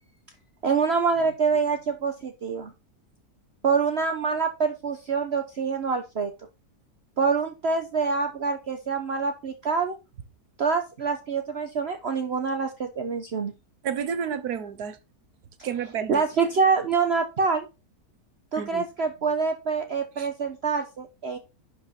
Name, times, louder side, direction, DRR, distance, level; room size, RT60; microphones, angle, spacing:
voice 1, 0.6-2.7 3.6-6.3 7.2-10.0 10.6-13.5 15.6-15.7 16.1-17.7 18.5-21.4, right 5 dB, 50° right, 1.1 m, -26 dB
voice 2, 13.8-15.0 15.6-16.2 18.5-18.8 20.2-20.3, right 7 dB, 85° right, 1.6 m, -30 dB
11.5 x 5.2 x 4.3 m
omnidirectional pair, 1.6 m